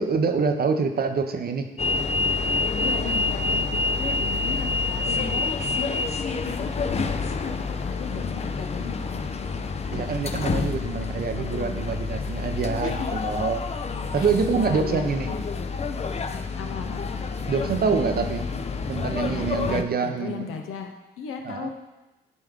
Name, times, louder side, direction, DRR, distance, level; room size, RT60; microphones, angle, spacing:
voice 1, 0.0-1.7 9.9-13.6 14.1-15.3 17.5-18.5 18.9-20.5 21.4-21.7, right 5 dB, 45° right, 6 dB, 0.7 m, -26 dB
sound 1, 1.8-19.8, left 4 dB, 30° left, 0.6 m, -28 dB
voice 2, 2.7-7.5 7.8-9.2 12.8-13.3 14.2-15.4 16.6-17.0 19.7-21.7, left 5 dB, 80° left, 4 dB, 0.8 m, -36 dB
9.3 x 3.5 x 3.6 m, 1.0 s
supercardioid pair, 55°, 21 cm